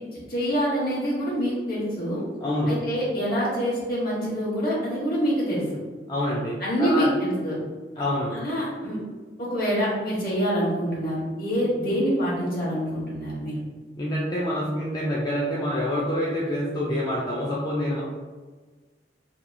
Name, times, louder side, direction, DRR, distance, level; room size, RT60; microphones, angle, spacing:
voice 1, 0.3-2.2 2.7-5.6 6.6-7.6 8.0-8.1 8.3-9.0 9.5-13.6, equal, 55° left, -6 dB, 1.1 m, -26 dB
voice 2, 2.4-2.7 6.1-7.1 8.0-8.3 14.0-18.0, left 1 dB, 25° left, -5 dB, 0.3 m, -26 dB
2.8 x 2.3 x 2.5 m, 1.4 s
head